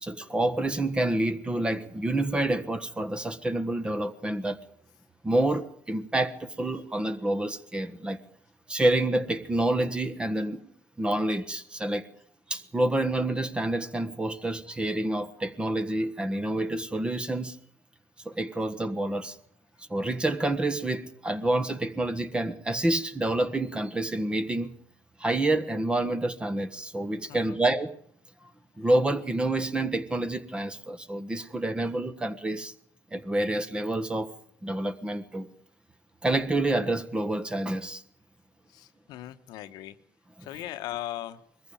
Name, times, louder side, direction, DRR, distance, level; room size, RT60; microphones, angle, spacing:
voice 1, 0.0-4.6 5.2-8.2 8.7-10.6 11.0-12.1 12.5-17.6 18.2-19.4 19.9-24.7 25.2-28.0 28.4-28.5 28.8-32.7 33.1-34.3 34.6-35.5 36.2-38.0 40.4-40.5, right 1 dB, 15° right, 1.4 m, -28 dB
voice 2, 27.3-27.6 38.7-39.9 40.4-41.4, left 14 dB, 70° left, 1.1 m, -38 dB
21.5 x 14.5 x 8.8 m
cardioid pair, 110°, 7 cm